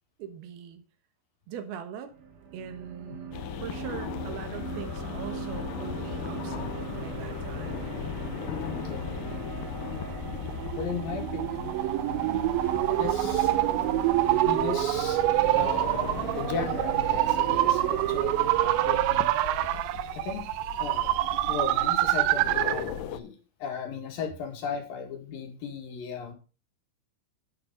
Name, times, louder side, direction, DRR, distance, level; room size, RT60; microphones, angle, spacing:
voice 1, 0.2-0.8 1.5-2.1 2.5-7.9 12.3-12.6, right 8 dB, 65° right, 8 dB, 2.9 m, -42 dB
sound 1, 2.1-19.1, right 5 dB, 50° right, 3.5 m, -39 dB
sound 2, 3.3-23.2, left 10 dB, 85° left, 1.9 m, -38 dB
voice 2, 8.8-9.7 10.8-12.4 12.9-13.5 13.9-20.5 20.8-21.1 21.5-26.3, left 5 dB, 60° left, 4 dB, 3.5 m, -37 dB
sound 3, 10.2-22.9, right 16 dB, 85° right, 3.0 m, -26 dB
11.0 x 9.6 x 3.9 m, 0.34 s
omnidirectional pair, 5.1 m